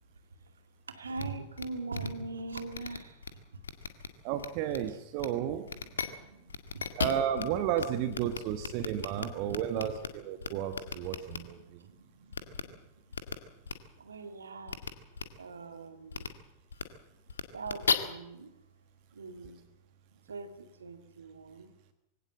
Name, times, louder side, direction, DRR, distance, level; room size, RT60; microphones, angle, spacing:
voice 1, 0.9-3.6 5.3-6.9 8.8-9.6 10.1-10.9 11.4-12.8 14.0-14.8 15.3-16.3 17.5-18.6 19.1-19.6 20.1-21.7, right 3 dB, 70° right, 8 dB, 2.3 m, -43 dB
sound 1, 1.2-1.3 1.6-1.7 1.9-2.1 2.5-3.3 3.6-4.1 4.4-4.8 5.2-5.3 5.7-6.1 6.5-7.4 7.8-7.9 8.1-10.1 10.4-11.4 12.3-12.6 13.1-13.3 13.7-13.8 14.7-14.9 15.2-15.3 16.1-16.3 16.7-16.8 17.3-17.9, left 6 dB, 70° left, 1.8 m, -34 dB
voice 2, 4.2-5.7 7.0-11.9, right 10 dB, 45° right, 10 dB, 1.4 m, -32 dB
23.0 x 17.0 x 7.6 m, 0.91 s
figure-of-eight pair, 90°, 0 cm